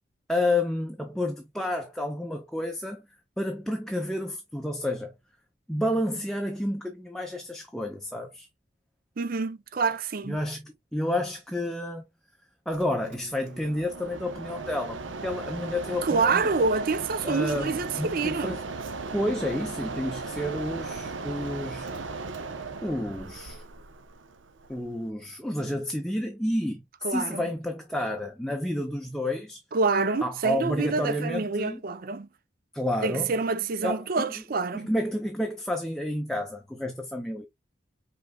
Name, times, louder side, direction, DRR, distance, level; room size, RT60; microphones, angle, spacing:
voice 1, 0.3-3.0 3.4-5.1 5.7-8.5 10.3-12.1 12.7-16.4 17.2-18.6 19.1-21.9 22.8-23.6 24.7-26.8 27.1-29.6 30.2-31.8 32.7-33.3 33.8-34.2 34.7-37.5, left 1 dB, 5° left, 0.5 m, -30 dB
voice 2, 9.2-10.4 16.0-18.6 27.0-27.5 29.7-32.3 33.0-34.9, right 4 dB, 50° right, 0.5 m, -27 dB
Mechanisms, 12.7-25.1, right 3 dB, 80° right, 0.8 m, -37 dB
5.3 x 3.7 x 2.2 m
head